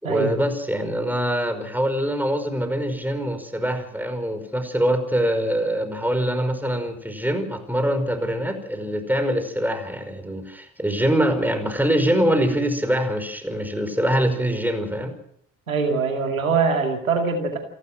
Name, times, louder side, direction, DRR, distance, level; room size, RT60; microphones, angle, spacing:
voice 1, 0.0-15.2, equal, 5° right, 8 dB, 5.4 m, -24 dB
voice 2, 15.7-17.6, right 5 dB, 90° right, 3 dB, 2.4 m, -22 dB
27.5 x 13.0 x 7.6 m, 0.66 s
figure-of-eight pair, 45°, 40 cm